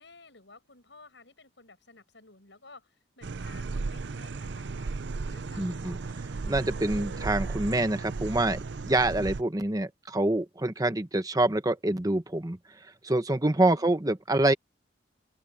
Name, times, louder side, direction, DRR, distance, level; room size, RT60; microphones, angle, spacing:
voice 1, 0.0-5.7 13.6-13.9, left 3 dB, 70° left, 7.5 m, -54 dB
sound 1, 3.2-9.4, right 4 dB, 70° right, 0.6 m, -35 dB
voice 2, 5.6-6.0 6.5-8.6 8.8-14.5, right 2 dB, 20° right, 1.0 m, -26 dB
open air
head